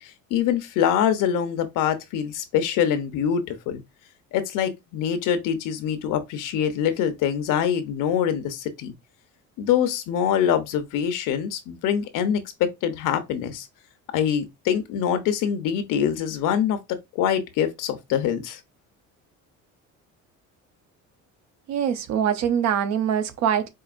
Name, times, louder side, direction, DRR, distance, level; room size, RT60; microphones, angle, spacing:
voice 1, 0.0-3.8 4.3-8.9 9.6-13.7 14.1-18.6, left 9 dB, 75° left, 0.8 m, -24 dB
voice 2, 21.7-23.7, right 8 dB, 60° right, 0.7 m, -23 dB
4.7 x 2.6 x 2.5 m
cardioid pair, 150°, 32 cm